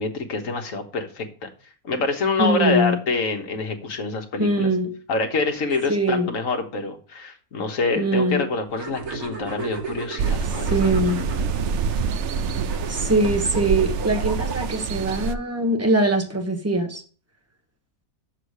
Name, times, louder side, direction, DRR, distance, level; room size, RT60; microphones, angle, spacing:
voice 1, 0.0-1.5 1.8-4.7 5.1-10.8 11.1-11.3, left 3 dB, 60° left, 5 dB, 1.6 m, -26 dB
voice 2, 2.4-3.0 4.4-4.9 5.9-6.3 7.9-8.5 10.6-11.2 12.9-17.0, right 1 dB, 10° right, 3 dB, 1.2 m, -22 dB
sound 1, 8.7-15.0, right 3 dB, 85° right, 2.3 m, -35 dB
sound 2, 10.2-15.3, right 6 dB, 65° right, 0.8 m, -26 dB
6.9 x 6.7 x 6.5 m, 0.42 s
omnidirectional pair, 1.6 m